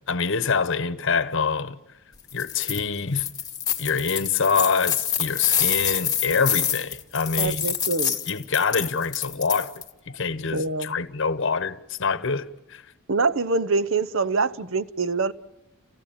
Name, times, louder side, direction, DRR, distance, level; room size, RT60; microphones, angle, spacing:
voice 1, 0.1-1.8 2.3-3.3 3.8-7.7 8.3-9.7 10.1-12.8, left 5 dB, 60° left, 1.0 m, -25 dB
sound 1, 2.3-2.8 3.2-9.9, left 8 dB, 20° left, 2.2 m, -27 dB
voice 2, 7.4-8.2 10.5-11.0 13.1-15.3, right 3 dB, 60° right, 0.8 m, -25 dB
30.0 x 17.0 x 8.8 m
head